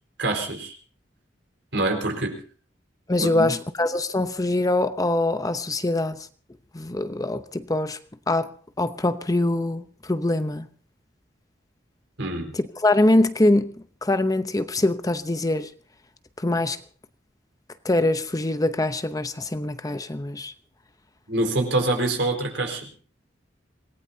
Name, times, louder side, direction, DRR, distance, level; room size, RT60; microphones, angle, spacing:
voice 1, 0.2-0.7 1.7-2.4 3.2-3.5 12.2-12.5 21.3-22.9, right 2 dB, 75° right, 4.6 m, -25 dB
voice 2, 3.1-6.3 6.7-8.0 8.3-8.5 8.8-10.7 12.5-13.7 14.0-15.7 16.4-16.8 17.8-20.5, left 2 dB, 20° left, 0.8 m, -23 dB
26.5 x 18.5 x 2.8 m
head